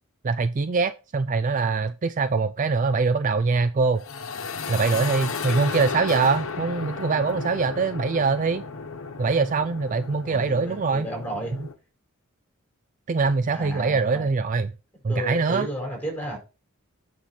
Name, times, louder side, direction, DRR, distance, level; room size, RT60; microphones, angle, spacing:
voice 1, 0.2-4.0 4.7-8.6 9.2-11.1 11.6-11.7 13.1-14.7 15.0-15.7, right 4 dB, 35° right, 0.4 m, -23 dB
sound 1, 3.9-11.7, left 5 dB, 70° left, 1.0 m, -34 dB
voice 2, 10.2-11.6 13.5-14.3 15.1-16.4, right 1 dB, 10° left, 4.6 m, -33 dB
8.9 x 5.7 x 4.0 m
head